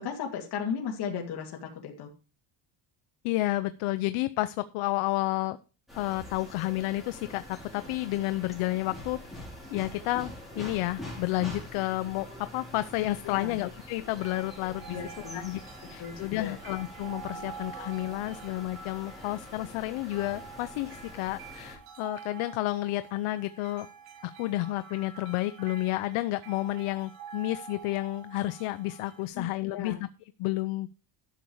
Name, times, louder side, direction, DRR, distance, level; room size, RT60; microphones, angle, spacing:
voice 1, 0.0-2.1 13.2-13.6 14.9-15.4 16.0-16.6 17.4-17.5 29.3-30.0, left 7 dB, 50° left, 0 dB, 2.4 m, -36 dB
voice 2, 3.2-5.6 5.9-9.2 9.7-15.0 15.3-15.6 15.9-23.9 24.2-29.9 30.4-30.9, left 17 dB, 85° left, 12 dB, 0.8 m, -31 dB
sound 1, 5.9-21.8, left 1 dB, ahead, 4.7 m, -45 dB
sound 2, 14.2-29.3, right 6 dB, 90° right, 3.8 m, -47 dB
12.0 x 7.1 x 4.7 m, 0.32 s
cardioid pair, 155°, 49 cm